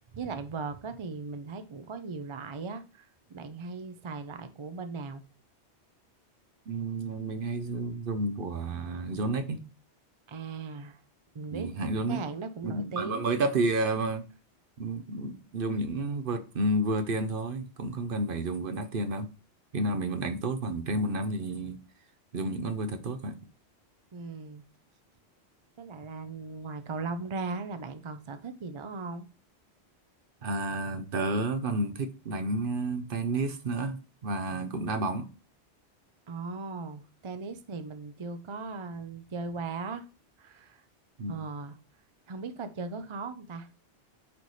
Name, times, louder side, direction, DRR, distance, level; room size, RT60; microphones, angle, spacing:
voice 1, 0.1-5.2 10.3-11.0 11.3-11.7 12.1-13.2 24.1-24.6 25.8-29.3 36.3-40.1 40.4-40.8 41.3-41.8 42.3-43.7, right 4 dB, 35° right, 0.5 m, -38 dB
voice 2, 6.7-9.6 11.5-12.2 12.6-14.3 14.8-19.3 19.7-21.8 22.3-23.4 30.4-35.3 41.2-41.4, right 2 dB, 55° right, 0.9 m, -31 dB
8.6 x 3.3 x 4.1 m
omnidirectional pair, 1.1 m